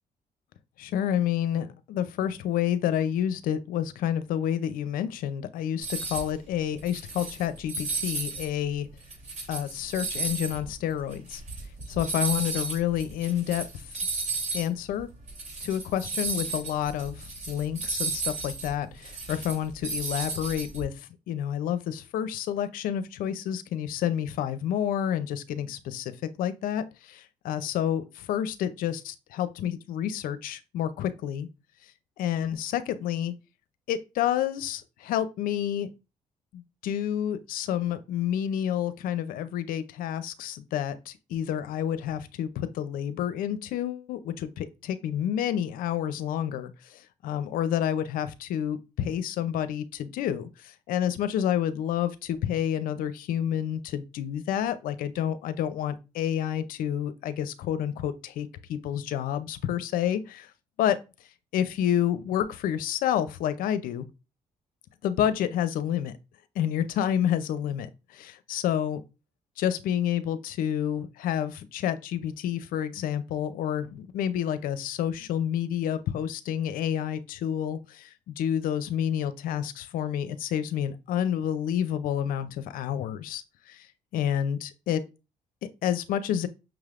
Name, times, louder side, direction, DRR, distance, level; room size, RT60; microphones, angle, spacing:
voice 1, 0.8-8.9 9.5-11.4 11.9-13.6 14.5-15.1 15.6-20.9 21.3-26.1 26.4-31.5 32.2-33.3 33.9-35.9 36.5-60.5 60.8-61.0 61.5-64.1 65.0-66.1 66.6-69.0 69.6-83.9 84.1-85.0 85.8-86.5, left 10 dB, 85° left, 0.5 m, -29 dB
sound 1, 5.8-6.3 6.8-8.5 8.9-14.7 15.0-15.1 15.3-20.8, right 3 dB, 55° right, 2.9 m, -34 dB
6.0 x 3.2 x 2.4 m
cardioid pair, 80°, 14 cm